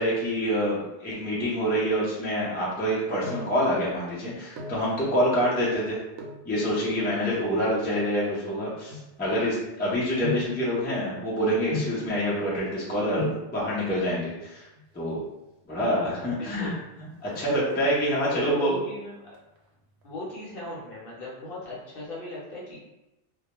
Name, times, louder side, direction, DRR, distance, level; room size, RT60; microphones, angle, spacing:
voice 1, 0.0-6.0 6.5-14.6 14.9-15.2 15.7-16.7 17.2-18.8, equal, 10° left, -7 dB, 0.5 m, -26 dB
sound 1, 2.8-3.6 4.3-4.9 6.1-6.5 7.2-9.6 10.2-10.6 11.7-12.1 12.9-13.0 13.2-13.5 14.6-15.2 15.5-15.6 15.8-15.9 16.3-16.7 17.0-18.1 18.5-18.9 19.3-20.4 20.7-20.8, left 2 dB, 75° right, 0.8 m, -37 dB
voice 2, 16.4-16.8 18.3-19.2 20.0-22.8, left 2 dB, 55° left, -5 dB, 0.8 m, -38 dB
2.2 x 2.2 x 2.9 m, 0.95 s
omnidirectional pair, 1.2 m